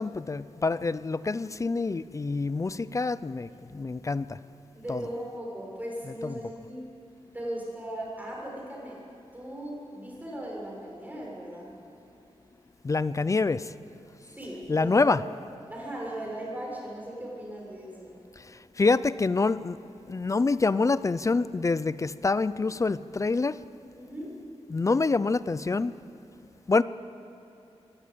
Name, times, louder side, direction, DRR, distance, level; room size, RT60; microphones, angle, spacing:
voice 1, 0.0-4.4 4.9-5.0 6.2-6.3 12.8-13.7 14.7-15.2 18.4-19.8 20.1-23.6 24.7-25.9 26.7-26.8, left 3 dB, 30° left, 16 dB, 0.5 m, -26 dB
voice 2, 3.5-3.8 4.7-6.9 7.3-9.0 9.3-11.7 14.4-15.2 15.7-18.1 24.0-24.5, right 1 dB, 15° right, -3 dB, 6.9 m, -38 dB
21.5 x 18.0 x 8.5 m, 3.0 s
wide cardioid pair, 120°, 11 cm